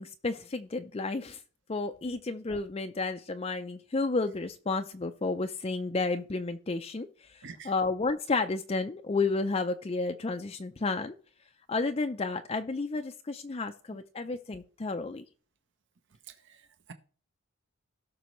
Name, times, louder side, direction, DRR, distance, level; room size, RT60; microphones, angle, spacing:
voice 1, 0.0-1.4 1.7-11.1 11.7-15.2, left 3 dB, 25° left, 0.4 m, -32 dB
voice 2, 7.4-7.7 16.2-16.9, right 6 dB, 55° right, 0.7 m, -48 dB
17.0 x 6.0 x 3.1 m
head